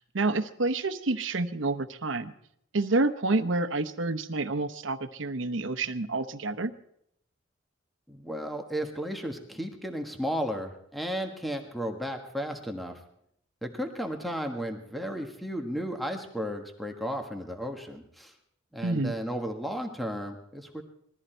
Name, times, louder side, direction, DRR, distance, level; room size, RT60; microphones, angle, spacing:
voice 1, 0.0-2.3 2.7-6.7 18.8-19.1, right 2 dB, 70° right, 10 dB, 0.9 m, -28 dB
voice 2, 8.1-13.0 13.6-18.3 18.7-20.8, equal, ahead, 4 dB, 1.4 m, -34 dB
20.5 x 14.0 x 4.5 m, 0.71 s
head